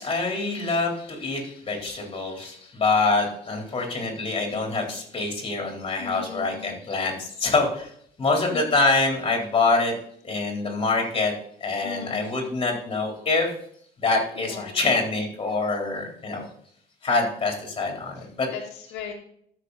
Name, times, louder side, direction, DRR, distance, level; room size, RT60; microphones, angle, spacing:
voice 1, 0.0-7.9 8.2-9.9 10.2-11.3 11.6-13.5 14.0-16.4 17.0-18.5, left 3 dB, 30° left, 1 dB, 3.8 m, -25 dB
voice 2, 6.0-6.8 8.4-8.8 11.8-12.4 14.3-14.8 18.2-19.1, left 6 dB, 90° left, 0 dB, 1.9 m, -38 dB
13.5 x 6.6 x 4.1 m, 0.65 s
cardioid pair, 110°, 17 cm